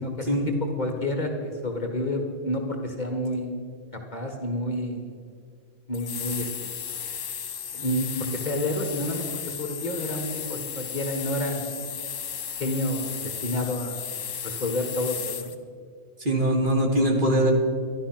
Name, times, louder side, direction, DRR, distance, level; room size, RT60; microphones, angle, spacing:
voice 1, 0.0-0.4 0.8-3.5 4.1-5.2 5.9-6.7 7.7-11.8 12.6-14.0 14.4-15.5, left 1 dB, 35° left, 3 dB, 1.4 m, -29 dB
sound 1, 5.9-15.5, left 8 dB, 75° left, 1.3 m, -34 dB
voice 2, 16.2-17.5, right 1 dB, 40° right, 0 dB, 2.0 m, -22 dB
12.5 x 11.5 x 5.9 m, 2.2 s
omnidirectional pair, 1.3 m